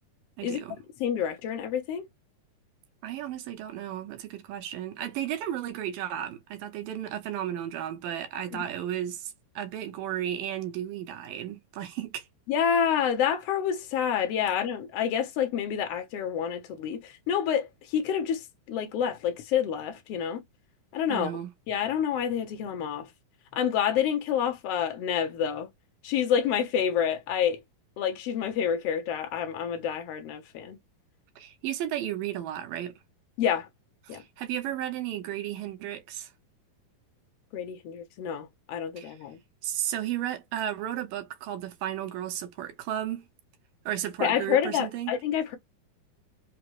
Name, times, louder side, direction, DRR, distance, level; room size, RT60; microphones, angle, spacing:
voice 1, 0.4-0.8 3.0-12.3 21.1-21.5 31.4-32.9 34.0-36.3 39.0-39.2 39.6-43.3 43.9-45.1, right 11 dB, 75° right, 2.4 m, -34 dB
voice 2, 1.0-2.1 8.5-8.6 12.5-17.7 17.9-18.4 18.7-20.4 20.9-21.3 21.7-23.1 23.5-25.7 26.0-27.6 28.0-30.8 33.4-33.7 34.1-34.2 37.5-39.4 44.2-45.6, left 8 dB, 80° left, 1.4 m, -28 dB
5.8 x 2.1 x 3.1 m
omnidirectional pair, 4.3 m